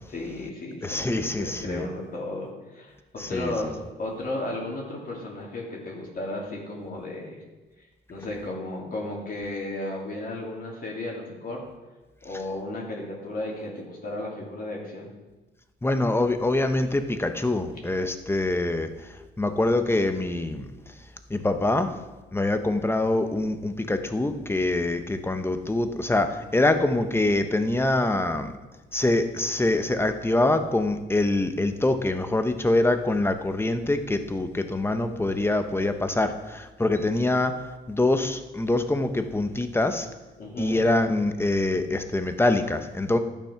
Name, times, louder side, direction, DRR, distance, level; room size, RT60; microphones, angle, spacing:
voice 1, 0.1-7.4 8.1-11.6 12.2-15.1 40.4-40.8, left 2 dB, 45° left, -2 dB, 2.9 m, -34 dB
voice 2, 0.8-1.9 3.2-3.7 15.8-18.9 19.4-20.7 21.3-21.9 22.3-28.5 28.9-37.5 37.9-40.1 40.6-43.2, left 2 dB, 10° left, 8 dB, 0.9 m, -24 dB
11.5 x 7.0 x 5.8 m, 1.2 s
cardioid pair, 90°, 20 cm